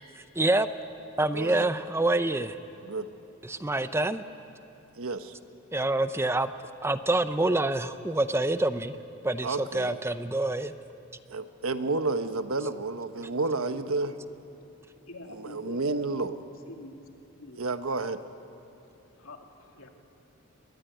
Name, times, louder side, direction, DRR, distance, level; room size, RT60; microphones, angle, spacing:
voice 1, 0.3-0.7 1.2-2.6 3.4-4.2 5.7-6.5 6.8-9.0 9.2-10.7, right 2 dB, 10° right, 11 dB, 0.7 m, -26 dB
voice 2, 1.3-1.7 2.8-3.1 5.0-5.3 9.4-10.0 11.3-14.1 15.3-16.4 17.6-18.2, right 3 dB, 90° right, 9 dB, 1.2 m, -30 dB
voice 3, 15.0-16.1 16.7-17.0 17.4-17.6 19.0-19.9, left 1 dB, 80° left, 3 dB, 2.6 m, -46 dB
23.0 x 21.5 x 9.3 m, 2.8 s
head